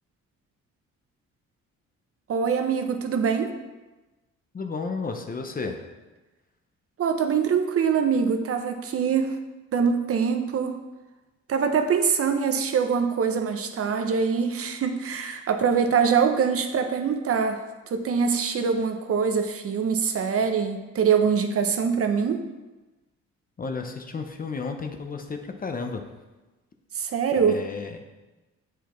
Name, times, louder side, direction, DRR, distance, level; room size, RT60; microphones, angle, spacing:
voice 1, 2.3-3.5 7.0-9.4 9.7-10.8 11.5-22.5 26.9-27.6, right 6 dB, 50° right, 6 dB, 0.6 m, -24 dB
voice 2, 4.5-5.8 23.6-26.0 27.4-28.0, left 4 dB, 30° left, 5 dB, 0.6 m, -32 dB
8.0 x 4.7 x 3.1 m, 1.1 s
cardioid pair, 90°, 30 cm